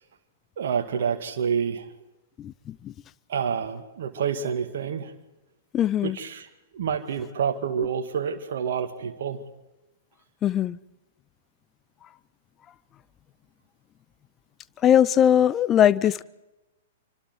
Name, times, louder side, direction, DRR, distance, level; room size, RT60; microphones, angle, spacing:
voice 1, 0.6-1.9 3.3-5.1 6.0-6.5 6.7-9.4, right 7 dB, 55° right, 2.1 m, -28 dB
voice 2, 2.4-2.9 5.7-6.2 10.4-10.8 14.8-16.2, left 10 dB, 25° left, 0.7 m, -20 dB
26.5 x 25.0 x 4.6 m
figure-of-eight pair, 105°, 0 cm